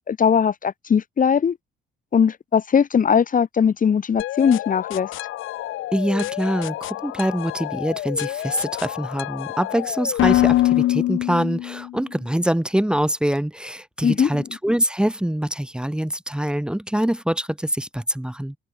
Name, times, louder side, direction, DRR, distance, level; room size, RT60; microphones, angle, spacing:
voice 1, 0.1-1.6 2.1-5.1 14.0-14.3, left 7 dB, 40° left, 1.3 m, -19 dB
sound 1, 4.2-12.0, left 15 dB, 85° left, 3.7 m, -25 dB
voice 2, 5.9-18.6, equal, 5° right, 1.4 m, -24 dB
cardioid pair, 90°, 20 cm